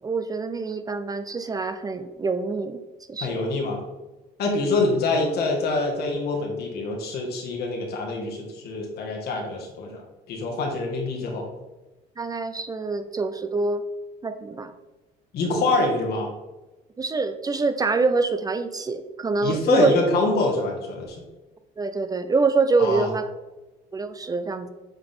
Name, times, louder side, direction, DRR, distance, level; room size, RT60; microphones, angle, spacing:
voice 1, 0.0-2.8 3.1-3.4 12.2-13.8 14.2-14.7 17.0-20.1 21.8-23.3 23.9-24.7, right 3 dB, 20° right, 10 dB, 0.4 m, -25 dB
voice 2, 3.2-3.8 4.4-10.0 10.3-11.5 15.3-16.3 19.4-21.2 22.8-23.1, left 3 dB, 70° left, 0 dB, 1.7 m, -25 dB
8.1 x 3.9 x 3.5 m, 1.1 s
cardioid pair, 110°, 17 cm